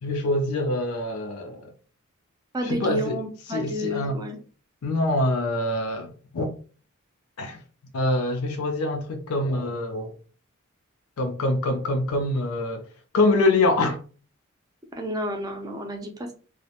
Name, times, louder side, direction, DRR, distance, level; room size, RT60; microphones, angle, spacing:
voice 1, 0.0-1.7 2.6-3.2 3.5-4.2 4.8-6.5 7.4-7.6 7.9-10.1 11.2-12.9 13.1-14.0, left 2 dB, 85° left, 0.5 m, -25 dB
voice 2, 2.5-4.4 14.9-16.3, equal, 20° right, 0.4 m, -31 dB
2.4 x 2.0 x 2.8 m
head